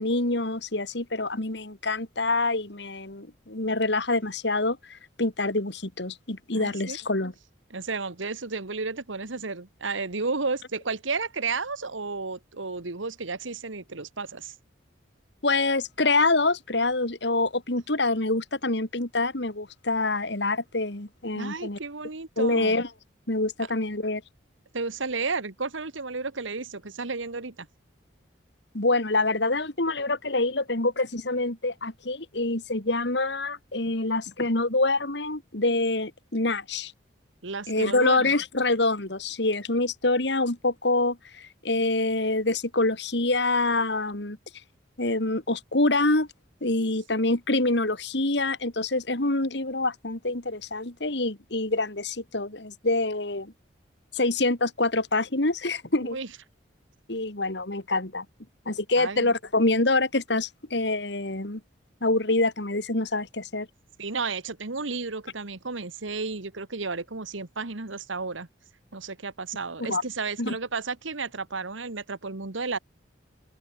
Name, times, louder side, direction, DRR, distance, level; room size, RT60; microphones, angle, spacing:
voice 1, 0.0-7.3 15.4-21.8 22.4-22.9 23.3-24.2 28.7-36.9 37.7-44.4 45.0-46.3 46.6-53.5 54.1-56.2 57.1-58.2 58.7-61.6 62.0-63.7 69.9-70.0 70.4-70.6, left 2 dB, 65° left, 2.4 m, -26 dB
voice 2, 6.5-7.0 7.7-14.5 21.4-22.8 24.7-27.7 37.4-38.3 56.0-56.3 59.0-59.3 64.0-68.5 68.9-72.8, right 4 dB, 85° right, 1.6 m, -32 dB
open air
head